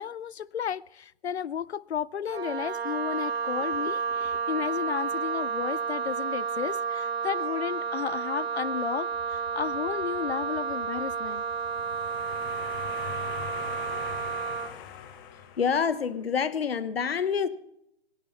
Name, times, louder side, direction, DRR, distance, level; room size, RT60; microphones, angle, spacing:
voice 1, 0.0-11.4, left 8 dB, 85° left, 0.5 m, -33 dB
Wind instrument woodwind instrument, 2.3-14.8, right 5 dB, 70° right, 1.2 m, -31 dB
sound 1, 9.1-13.5, left 6 dB, 40° left, 4.4 m, -54 dB
sound 2, 11.4-16.1, left 9 dB, 20° left, 1.1 m, -42 dB
voice 2, 15.6-17.5, left 6 dB, 65° left, 1.2 m, -27 dB
20.5 x 10.5 x 5.5 m
hypercardioid pair, 150°, 32 cm